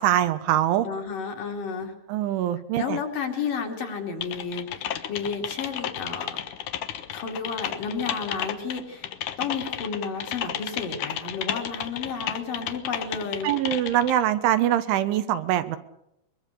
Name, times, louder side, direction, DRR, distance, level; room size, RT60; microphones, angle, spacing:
voice 1, 0.0-0.9 2.1-3.0 13.4-15.8, right 12 dB, 85° right, 11 dB, 3.6 m, -23 dB
voice 2, 0.8-1.9 2.7-6.4 7.1-9.1 9.4-13.5, left 5 dB, 50° left, 2 dB, 4.1 m, -32 dB
Typing, 4.2-14.1, left 10 dB, 75° left, 1.9 m, -33 dB
23.0 x 23.0 x 6.8 m, 0.79 s
omnidirectional pair, 5.4 m